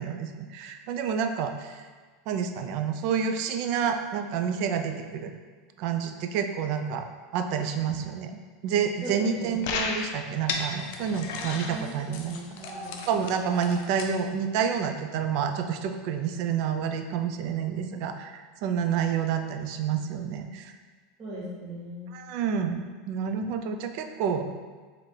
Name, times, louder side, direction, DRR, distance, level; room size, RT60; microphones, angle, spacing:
voice 1, 0.0-1.8 2.3-5.3 5.8-7.1 7.3-8.4 8.6-12.6 13.1-20.7 22.1-24.6, right 7 dB, 55° right, 7 dB, 0.3 m, -29 dB
voice 2, 9.0-9.6 11.4-13.0 21.2-22.1, right 1 dB, 30° right, -7 dB, 1.4 m, -39 dB
sound 1, 9.6-14.1, left 4 dB, 65° left, 0.4 m, -34 dB
3.2 x 2.5 x 4.3 m, 1.4 s
supercardioid pair, 140°, 0 cm